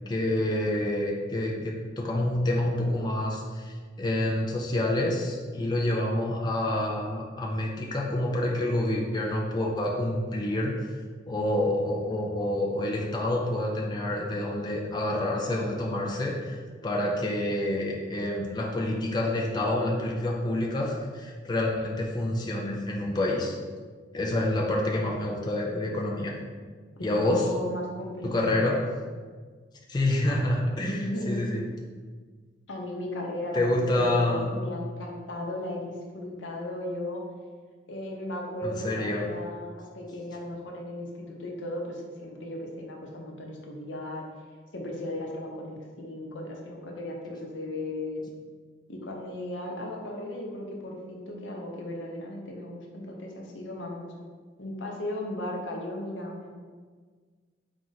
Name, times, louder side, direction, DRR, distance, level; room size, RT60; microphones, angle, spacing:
voice 1, 0.1-11.0 11.3-16.6 16.8-23.6 24.1-26.4 27.0-27.5 28.2-28.9 29.9-31.6 33.5-34.5 38.6-39.3, left 1 dB, 25° left, -2 dB, 0.4 m, -28 dB
voice 2, 27.2-28.3 30.8-31.8 32.7-37.2 37.9-44.3 44.7-48.2 48.9-54.1 54.6-56.5, left 1 dB, 90° left, 0 dB, 0.7 m, -36 dB
4.3 x 2.5 x 3.9 m, 1.5 s
head